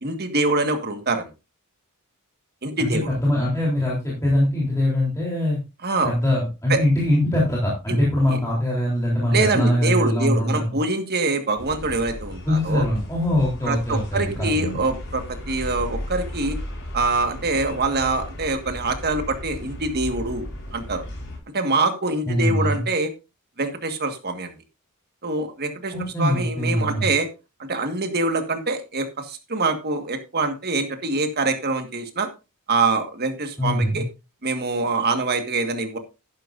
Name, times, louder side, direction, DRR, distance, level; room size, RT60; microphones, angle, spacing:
voice 1, 0.0-1.3 2.6-3.1 5.8-6.1 6.7-6.8 7.9-8.0 8.3-8.4 9.3-12.8 13.7-16.6 16.9-20.5 20.7-21.0 21.5-23.1 23.6-24.5 25.2-25.9 26.2-27.3 27.6-32.3 32.7-34.0 34.4-36.0, right 3 dB, 45° right, 7 dB, 1.6 m, -24 dB
voice 2, 2.8-5.6 6.0-10.8 12.4-14.8 22.3-22.8 25.9-27.1 33.6-34.0, left 1 dB, 15° left, -5 dB, 3.5 m, -22 dB
sound 1, 11.6-21.4, equal, 60° left, 5.1 m, -35 dB
12.0 x 10.5 x 2.6 m, 0.28 s
head